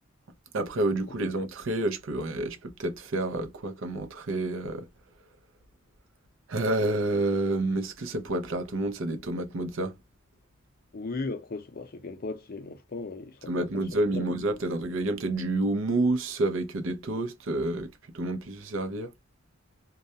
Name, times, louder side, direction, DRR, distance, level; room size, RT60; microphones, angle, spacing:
voice 1, 0.5-4.9 6.5-9.9 13.5-19.1, right 2 dB, 65° right, 0.6 m, -29 dB
voice 2, 10.9-14.3, left 3 dB, 45° left, 0.5 m, -37 dB
2.3 x 2.1 x 2.6 m
head